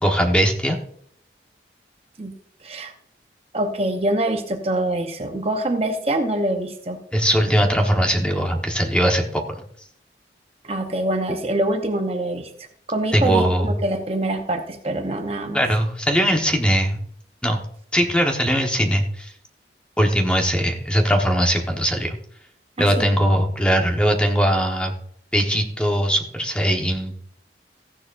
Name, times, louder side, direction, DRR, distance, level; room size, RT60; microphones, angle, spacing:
voice 1, 0.0-0.8 7.1-9.6 13.1-13.7 15.5-17.0 17.4-17.6 17.9-19.3 20.0-22.1 22.8-24.9 25.3-27.1, equal, 5° left, 2 dB, 1.2 m, -20 dB
voice 2, 2.6-2.9 3.5-7.0 10.6-15.6 22.8-23.1, right 1 dB, 35° right, 5 dB, 0.8 m, -25 dB
15.0 x 10.5 x 2.6 m, 0.64 s
head